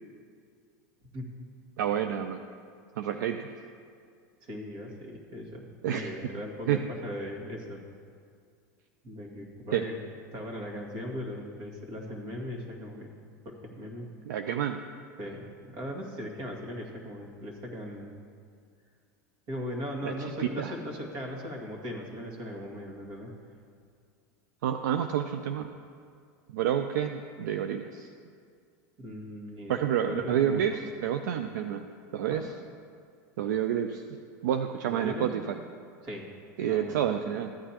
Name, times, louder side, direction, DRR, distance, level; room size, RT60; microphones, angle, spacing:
voice 1, 1.1-1.5 4.4-7.8 9.0-10.0 10.3-13.1 13.4-14.1 15.2-18.1 19.5-23.3 29.0-30.8 32.3-32.5 34.9-35.3 36.0-36.3 36.6-37.1, equal, 50° right, 0 dB, 2.0 m, -39 dB
voice 2, 1.8-2.4 3.0-3.5 5.8-6.1 6.7-6.9 9.7-9.9 14.2-14.8 20.0-20.7 24.6-25.7 26.5-28.1 29.7-31.9 32.1-32.5 33.4-34.0 34.4-35.6 36.6-37.6, right 9 dB, 80° right, 7 dB, 0.4 m, -29 dB
13.5 x 9.3 x 2.9 m, 2.2 s
hypercardioid pair, 100°, 10 cm